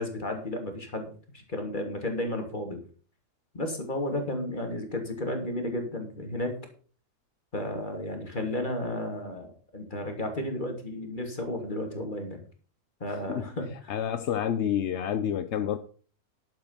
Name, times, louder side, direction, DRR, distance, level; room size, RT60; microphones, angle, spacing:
voice 1, 0.0-2.8 3.5-6.6 7.5-12.4 13.0-14.0, left 1 dB, 30° left, 2.8 m, -33 dB
voice 2, 13.9-15.8, left 9 dB, 60° left, 0.8 m, -28 dB
11.5 x 8.0 x 5.6 m
omnidirectional pair, 1.7 m